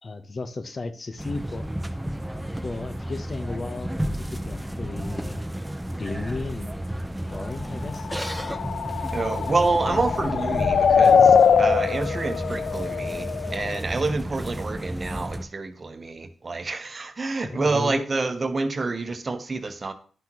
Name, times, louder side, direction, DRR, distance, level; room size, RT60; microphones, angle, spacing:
voice 1, 0.0-1.6 2.6-5.4 6.0-6.7 7.3-8.1 14.0-14.2 17.4-18.1, left 3 dB, 50° left, 9 dB, 0.9 m, -34 dB
sound 1, 1.2-15.4, right 1 dB, 10° right, 0.8 m, -32 dB
sound 2, 8.0-13.8, left 6 dB, 70° left, 0.4 m, -21 dB
voice 2, 9.1-19.9, right 3 dB, 45° right, 8 dB, 1.0 m, -28 dB
10.5 x 5.8 x 3.0 m, 0.43 s
supercardioid pair, 45°, 0 cm